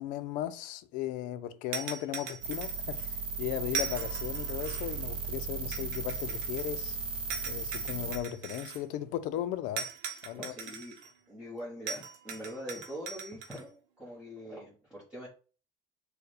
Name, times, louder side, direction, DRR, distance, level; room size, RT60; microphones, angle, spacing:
voice 1, 0.0-7.0 7.5-9.9 10.2-10.6, left 12 dB, 65° left, 0.5 m, -36 dB
sound 1, 1.7-3.0 3.7-5.0 5.7-6.8 7.3-8.8 9.8-11.1 11.9-13.6, right 6 dB, 85° right, 0.7 m, -40 dB
sound 2, 2.4-8.2, right 5 dB, 35° right, 0.6 m, -36 dB
voice 2, 10.3-11.0 11.3-15.3, equal, 5° right, 1.1 m, -43 dB
4.6 x 2.2 x 4.7 m
cardioid pair, 180°, 14 cm